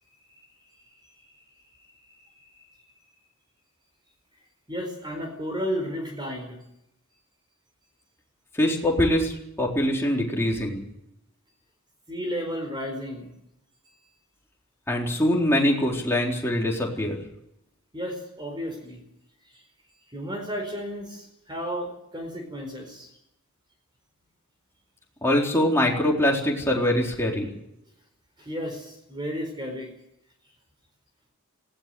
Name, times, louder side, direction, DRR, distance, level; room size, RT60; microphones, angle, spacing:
voice 1, 2.1-2.6 4.7-6.6 12.1-13.3 17.9-19.0 19.5-19.6 20.1-23.1 28.4-29.9, equal, 20° right, 3 dB, 4.5 m, -33 dB
voice 2, 8.6-10.8 14.9-17.2 25.2-27.5, left 1 dB, 10° left, -2 dB, 4.1 m, -23 dB
19.0 x 17.5 x 7.9 m, 0.80 s
head